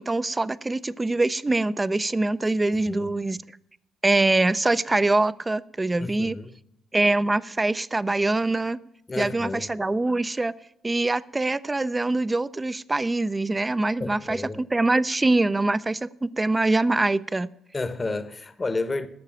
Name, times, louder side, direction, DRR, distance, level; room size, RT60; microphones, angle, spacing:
voice 1, 0.0-3.4 4.0-6.4 6.9-8.8 9.2-10.5 10.8-17.5, right 2 dB, 20° right, 0.5 m, -24 dB
voice 2, 6.0-6.5 9.1-9.7 14.0-14.6 17.7-19.1, left 3 dB, 25° left, 0.9 m, -31 dB
12.0 x 6.6 x 8.7 m
cardioid pair, 90°, 0 cm